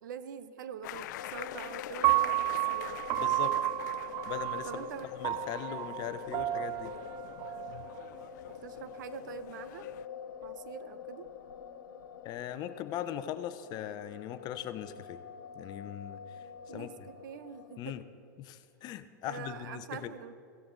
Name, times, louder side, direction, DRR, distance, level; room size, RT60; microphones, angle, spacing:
voice 1, 0.0-3.0 4.6-5.1 8.5-9.9 10.4-11.3 16.7-18.0 19.2-20.3, right 8 dB, 75° right, 12 dB, 0.8 m, -44 dB
sound 1, 0.8-10.1, left 14 dB, 70° left, 0.5 m, -46 dB
sound 2, 1.2-17.8, left 7 dB, 85° left, 1.5 m, -46 dB
Piano, 2.0-8.2, right 17 dB, 40° right, 0.4 m, -32 dB
voice 2, 3.1-3.6 4.3-4.9 5.1-6.9 12.2-15.2 15.5-16.2 16.7-16.9 17.8-18.0 18.4-20.1, left 10 dB, 45° left, 11 dB, 0.8 m, -40 dB
16.5 x 16.0 x 3.9 m, 2.4 s
hypercardioid pair, 115°, 10 cm